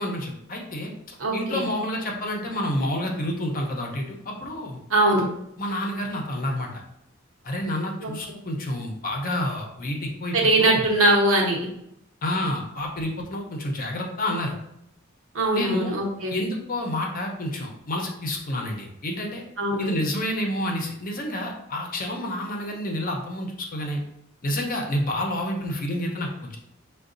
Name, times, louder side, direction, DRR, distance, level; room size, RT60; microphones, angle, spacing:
voice 1, 0.0-4.8 5.6-6.8 7.4-10.9 12.2-14.5 15.5-15.9 16.3-19.4 19.8-24.0 24.4-26.6, left 1 dB, 45° left, 1 dB, 0.7 m, -29 dB
voice 2, 1.2-1.7 4.9-5.3 8.0-8.1 10.3-11.7 15.3-16.3 19.6-19.9, right 1 dB, 75° right, -2 dB, 0.9 m, -21 dB
5.6 x 2.3 x 2.5 m, 0.76 s
head